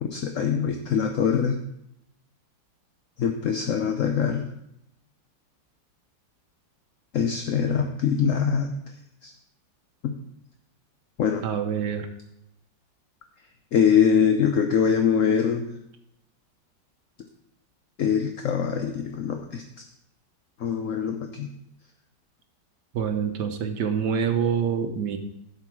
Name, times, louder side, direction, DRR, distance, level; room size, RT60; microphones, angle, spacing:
voice 1, 0.0-1.6 3.2-4.5 7.1-8.8 9.2-9.3 10.0-10.2 11.2-11.4 13.7-15.7 18.0-19.6 20.6-21.5, left 7 dB, 60° left, 5 dB, 0.9 m, -23 dB
voice 2, 11.4-12.1 22.9-25.2, right 7 dB, 70° right, 7 dB, 1.4 m, -26 dB
11.0 x 6.8 x 4.7 m, 0.80 s
omnidirectional pair, 2.0 m